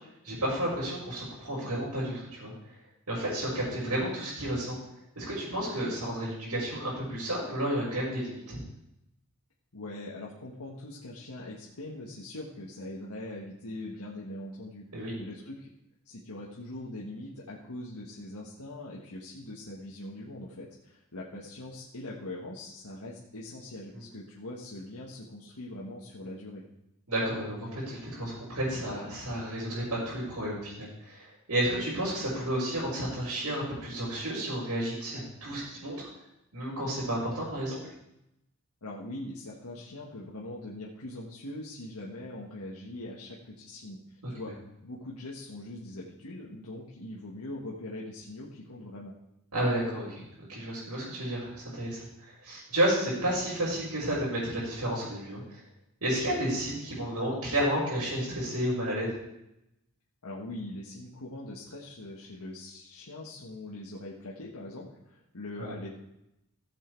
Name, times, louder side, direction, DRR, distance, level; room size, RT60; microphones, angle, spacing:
voice 1, 0.2-2.5 3.1-4.8 5.2-8.6 14.9-15.2 23.9-24.0 27.1-36.1 36.5-37.9 44.2-44.3 49.5-50.2 50.5-55.6 56.0-59.2 65.6-65.7, right 1 dB, 85° right, -9 dB, 4.6 m, -31 dB
voice 2, 9.7-14.9 15.2-15.7 16.0-26.6 38.8-44.0 44.3-44.5 44.8-49.1 60.2-65.9, left 1 dB, 85° left, -4 dB, 1.6 m, -42 dB
14.5 x 7.6 x 4.6 m, 0.85 s
head